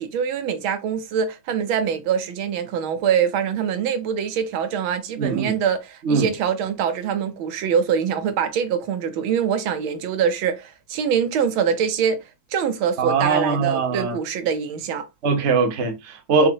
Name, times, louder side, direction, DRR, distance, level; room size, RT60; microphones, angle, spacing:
voice 1, 0.0-12.2 12.5-15.1, right 7 dB, 80° right, 1.5 m, -24 dB
voice 2, 5.2-5.5 6.0-6.3 13.0-14.2 15.2-16.5, right 4 dB, 45° right, 0.9 m, -21 dB
5.8 x 2.9 x 2.7 m
omnidirectional pair, 2.2 m